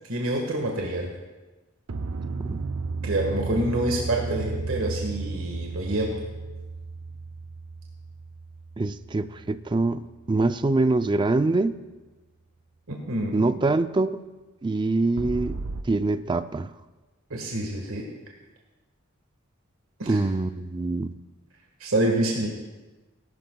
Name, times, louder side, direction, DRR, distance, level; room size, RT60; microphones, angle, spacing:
voice 1, 0.1-1.1 3.0-6.1 12.9-13.5 17.3-18.0 20.0-20.2 21.8-22.5, right 1 dB, 90° right, 0 dB, 1.6 m, -27 dB
sound 1, 1.9-10.2 15.2-15.8, right 4 dB, 75° right, 0.6 m, -34 dB
voice 2, 8.8-11.7 13.3-14.2 14.6-15.6 15.9-16.7 20.1-21.1, right 2 dB, 20° right, 12 dB, 0.4 m, -24 dB
19.5 x 12.0 x 2.3 m, 1.2 s
head